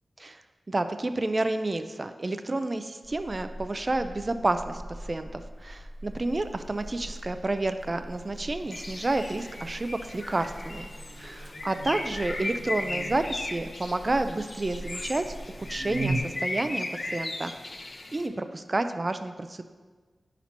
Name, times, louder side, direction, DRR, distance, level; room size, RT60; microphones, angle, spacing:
voice 1, 0.7-10.9 11.2-17.5 18.1-19.6, right 2 dB, 35° right, 9 dB, 0.4 m, -30 dB
Buzz, 3.0-16.2, right 2 dB, 55° right, 1.0 m, -40 dB
Bird, 8.7-18.3, left 2 dB, 50° left, 0.7 m, -37 dB
9.7 x 5.9 x 2.9 m, 1.4 s
wide cardioid pair, 75°, 0 cm